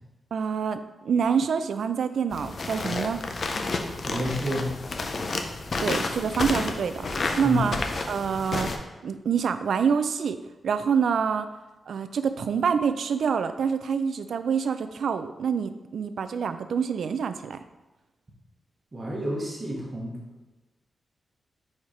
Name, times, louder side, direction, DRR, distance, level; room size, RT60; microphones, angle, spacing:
voice 1, 0.3-3.2 5.8-7.8 8.1-8.7 9.0-11.5 11.9-17.6, right 6 dB, 70° right, 10 dB, 0.4 m, -26 dB
sound 1, 2.3-8.8, left 3 dB, 45° left, 0.5 m, -30 dB
voice 2, 4.0-4.7 7.4-7.6 18.9-20.2, equal, 25° right, -3 dB, 1.1 m, -29 dB
4.6 x 4.2 x 4.9 m, 1.1 s
wide cardioid pair, 130°, 0 cm